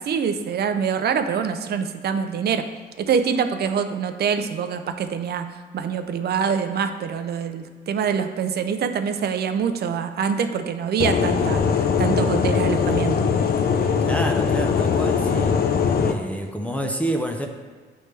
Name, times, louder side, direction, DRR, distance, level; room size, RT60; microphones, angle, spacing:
voice 1, 0.0-2.7 3.0-13.2, right 7 dB, 55° right, 9 dB, 0.5 m, -25 dB
sound 1, 11.0-16.1, left 6 dB, 50° left, 0.5 m, -21 dB
voice 2, 14.1-15.6 16.0-17.5, right 1 dB, 5° left, 3 dB, 0.6 m, -28 dB
8.9 x 3.3 x 3.3 m, 1.5 s
cardioid pair, 90°, 20 cm